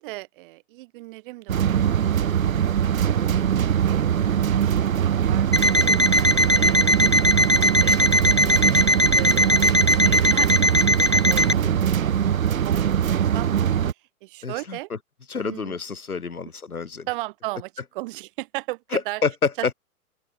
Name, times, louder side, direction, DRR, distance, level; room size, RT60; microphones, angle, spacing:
voice 1, 0.0-1.9 2.3-8.0 8.5-12.1 12.6-12.8 13.1-13.7 14.2-14.9 15.4-15.8 17.1-19.2, right 21 dB, 35° right, 3.0 m, -37 dB
sound 1, 1.5-13.9, right 9 dB, 60° right, 1.0 m, -22 dB
Alarm, 5.5-11.6, left 1 dB, 20° left, 0.3 m, -20 dB
voice 2, 11.6-12.2 14.4-15.0 15.3-17.1 18.9-19.7, left 5 dB, 70° left, 4.6 m, -29 dB
open air
figure-of-eight pair, 115°, 45 cm